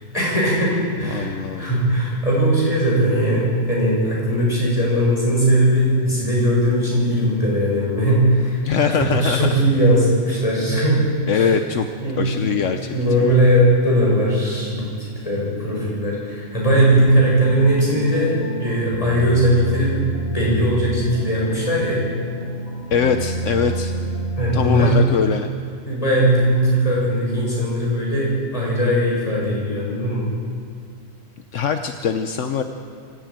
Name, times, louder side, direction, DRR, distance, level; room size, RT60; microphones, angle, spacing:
voice 1, 0.1-8.6 9.0-11.0 11.3-11.5 12.0-12.5 12.9-18.3 18.6-20.0 20.3-22.0 24.4-25.0 25.8-30.3, right 1 dB, 30° left, -5 dB, 7.6 m, -19 dB
voice 2, 1.1-1.8 8.6-9.5 11.3-11.9 12.2-13.3 22.9-23.9 24.5-25.5 31.5-32.6, left 6 dB, 75° left, 6 dB, 1.3 m, -22 dB
sound 1, 16.9-25.0, right 2 dB, 55° left, 2.3 m, -28 dB
24.5 x 14.5 x 9.3 m, 2.3 s
omnidirectional pair, 1.3 m